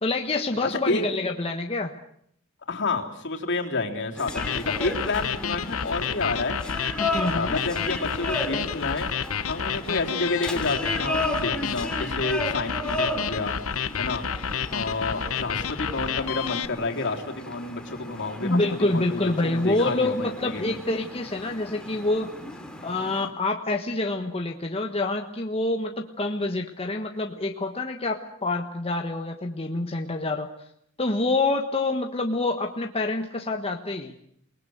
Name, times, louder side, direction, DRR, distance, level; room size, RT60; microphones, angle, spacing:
voice 1, 0.0-1.9 7.0-7.6 18.4-22.3 22.8-30.5 31.0-34.2, left 2 dB, 30° left, 3 dB, 1.4 m, -27 dB
voice 2, 0.6-1.0 2.7-6.6 7.1-9.1 9.5-13.6 13.9-14.2 14.7-20.8, left 3 dB, 60° left, 1 dB, 3.6 m, -29 dB
sound 1, 4.2-23.3, left 1 dB, 5° left, 3.2 m, -35 dB
sound 2, 4.3-16.7, left 7 dB, 85° left, 1.0 m, -30 dB
28.5 x 20.0 x 8.0 m, 0.71 s
head